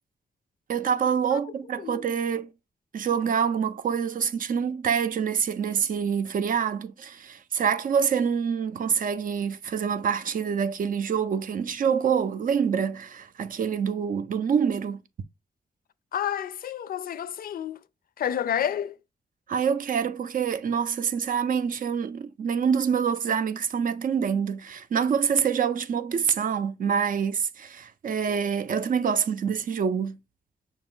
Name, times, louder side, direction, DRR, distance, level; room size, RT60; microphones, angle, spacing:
voice 1, 0.7-2.5 2.9-15.0 19.5-30.2, right 7 dB, 65° right, 0.4 m, -26 dB
voice 2, 16.1-17.8 18.2-19.0, left 9 dB, 75° left, 0.4 m, -29 dB
5.9 x 2.4 x 3.6 m
wide cardioid pair, 95°, 15 cm